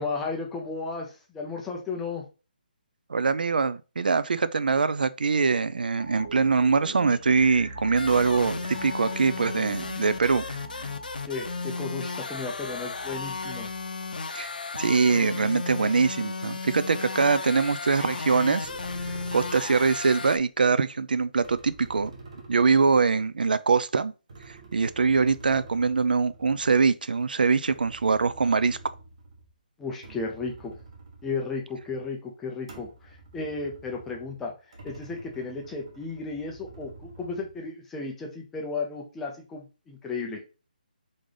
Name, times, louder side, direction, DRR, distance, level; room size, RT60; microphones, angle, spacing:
voice 1, 0.0-2.2 11.3-13.7 29.8-30.8 31.2-34.5 34.8-40.4, left 4 dB, 5° left, 0.3 m, -34 dB
voice 2, 3.1-10.4 14.3-18.7 19.0-22.1 22.5-24.1 24.5-28.8, right 4 dB, 70° right, 0.4 m, -23 dB
sound 1, 6.0-15.3 15.6-15.8, right 1 dB, 20° right, 0.8 m, -43 dB
sound 2, 8.0-20.4, left 4 dB, 70° left, 0.6 m, -34 dB
sound 3, 18.6-20.3 21.1-23.7 24.3-29.5 29.9-32.1 32.6-37.7, right 3 dB, 40° right, 1.1 m, -48 dB
3.9 x 3.3 x 3.7 m
hypercardioid pair, 180°, 5 cm